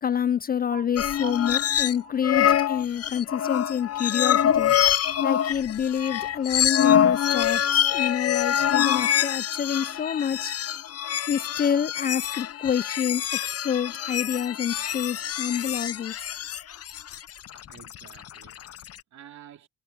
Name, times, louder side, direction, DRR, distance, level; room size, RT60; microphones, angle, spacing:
voice 1, 0.0-4.7 5.2-10.5 11.3-16.1, left 8 dB, 30° left, 0.4 m, -28 dB
sound 1, 1.0-2.0 2.2-18.9, left 10 dB, 55° left, 0.8 m, -25 dB
voice 2, 1.1-1.5 1.8-2.1 17.5-19.7, right 10 dB, 65° right, 3.0 m, -45 dB
cardioid pair, 90°, 30 cm